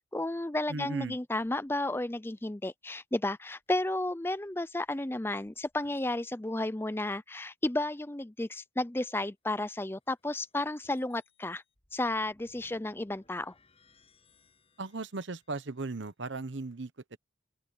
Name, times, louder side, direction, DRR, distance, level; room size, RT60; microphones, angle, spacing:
voice 1, 0.0-11.6 11.9-13.5, left 2 dB, 10° left, 0.5 m, -33 dB
voice 2, 0.7-1.2 14.8-17.2, right 3 dB, 70° right, 1.0 m, -37 dB
sound 1, 1.3-1.8 3.7-6.1 9.6-15.9, left 3 dB, 30° left, 7.3 m, -68 dB
open air
head